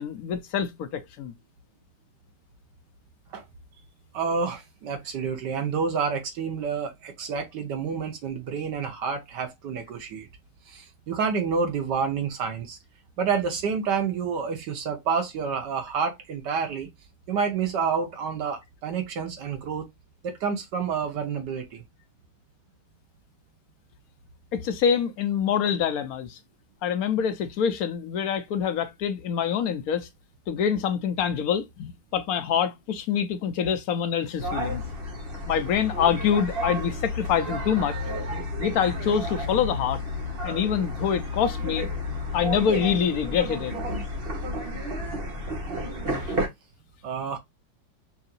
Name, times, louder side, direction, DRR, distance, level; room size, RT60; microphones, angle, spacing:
voice 1, 0.0-1.3 24.5-26.4 26.8-30.1 30.5-34.8 35.5-38.0 38.6-40.0 40.4-41.9 42.3-43.7, left 7 dB, 70° left, 0.9 m, -25 dB
voice 2, 4.1-10.3 10.7-12.8 13.2-16.9 17.3-19.9 20.2-21.8 47.0-47.4, right 6 dB, 70° right, 1.6 m, -29 dB
sound 1, 34.4-46.5, left 1 dB, 35° right, 1.2 m, -31 dB
5.6 x 2.7 x 2.5 m
omnidirectional pair, 1.9 m